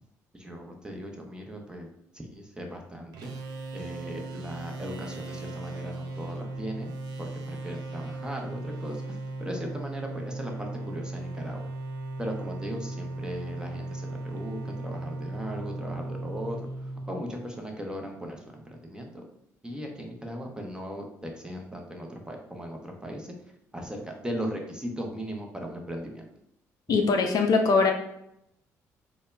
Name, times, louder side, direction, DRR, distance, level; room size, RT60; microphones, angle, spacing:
voice 1, 0.3-1.9 2.1-6.9 7.2-11.7 12.2-19.2 19.6-23.3 23.7-26.3, equal, 10° right, 2 dB, 0.6 m, -38 dB
sound 1, 3.1-17.7, right 2 dB, 65° right, 0.4 m, -37 dB
voice 2, 26.9-27.9, left 4 dB, 55° left, 4 dB, 0.4 m, -21 dB
2.1 x 2.0 x 3.3 m, 0.77 s
hypercardioid pair, 55°, 8 cm